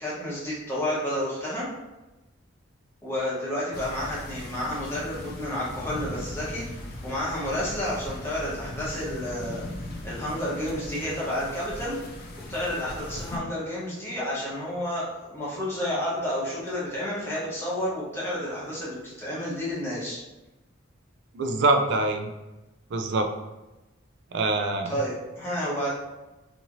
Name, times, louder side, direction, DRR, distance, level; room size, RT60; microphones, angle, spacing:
voice 1, 0.0-1.7 3.0-6.6 7.0-9.6 10.0-12.2 12.5-20.2 24.8-25.9, left 1 dB, 10° left, -8 dB, 0.8 m, -30 dB
sound 1, 3.7-13.4, left 1 dB, 50° left, 0.4 m, -38 dB
voice 2, 21.3-22.3 22.9-23.3 24.3-24.9, right 2 dB, 55° right, 5 dB, 0.3 m, -24 dB
2.7 x 2.4 x 2.9 m, 1.0 s
head